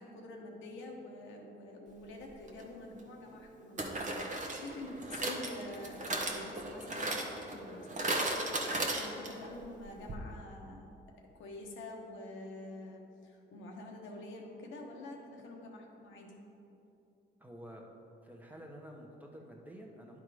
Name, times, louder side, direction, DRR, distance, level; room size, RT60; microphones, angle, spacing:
voice 1, 0.0-4.3 4.6-10.9 11.3-16.4, left 2 dB, 80° left, 0 dB, 1.1 m, -47 dB
sound 1, 2.5-2.6 3.8-9.5 9.8-9.9 10.1-10.2, right 2 dB, 40° right, 1.0 m, -36 dB
voice 2, 17.4-17.9 18.2-20.2, equal, 10° right, -1 dB, 1.0 m, -50 dB
10.0 x 3.7 x 4.8 m, 2.8 s
cardioid pair, 90°, 20 cm